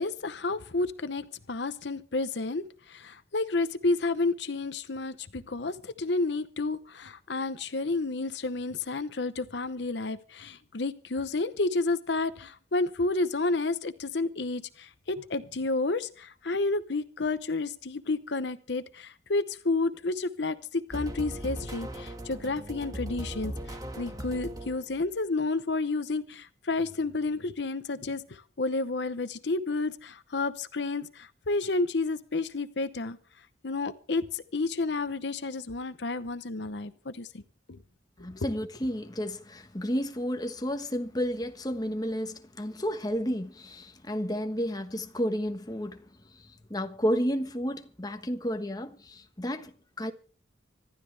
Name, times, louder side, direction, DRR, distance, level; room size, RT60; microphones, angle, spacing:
voice 1, 0.0-33.2 33.6-37.4 37.7-37.8, left 3 dB, 70° left, 0.8 m, -31 dB
sound 1, 20.9-25.1, equal, 20° right, 1.9 m, -38 dB
voice 2, 38.2-46.0 46.7-50.1, equal, 20° left, 1.3 m, -31 dB
25.5 x 12.0 x 3.4 m
head